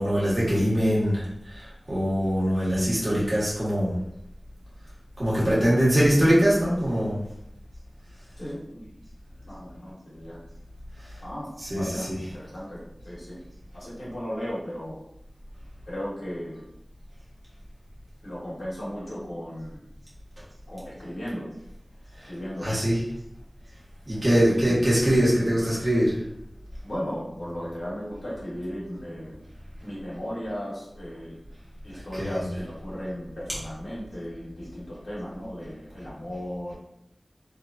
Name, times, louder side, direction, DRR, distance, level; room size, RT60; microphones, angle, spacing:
voice 1, 0.0-3.9 5.2-7.2 11.7-12.1 22.6-23.0 24.1-26.2 32.1-32.3, equal, 50° right, -8 dB, 1.1 m, -22 dB
voice 2, 8.4-8.9 9.4-10.4 11.2-13.4 13.7-15.0 15.8-16.6 18.2-19.9 20.7-21.5 22.2-22.8 24.4-24.6 26.8-29.4 29.8-31.4 31.8-36.7, equal, 90° left, -7 dB, 1.0 m, -36 dB
2.9 x 2.3 x 2.5 m, 0.79 s
wide cardioid pair, 55°, 0 cm